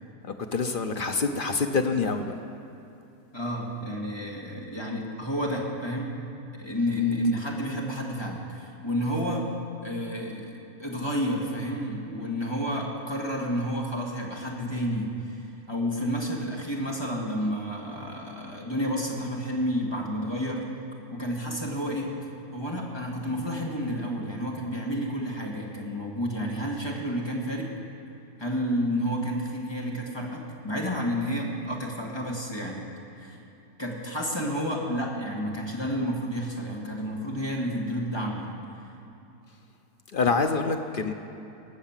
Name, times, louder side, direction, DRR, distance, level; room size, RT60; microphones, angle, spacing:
voice 1, 0.2-2.3 40.1-41.1, left 4 dB, 55° left, 5 dB, 0.6 m, -26 dB
voice 2, 3.3-6.2 6.5-9.5 9.8-20.7 21.1-22.1 22.5-27.7 28.4-32.9 33.2-33.4 33.8-38.6, equal, 15° left, -2 dB, 1.8 m, -30 dB
19.5 x 7.3 x 7.4 m, 2.8 s
omnidirectional pair, 1.7 m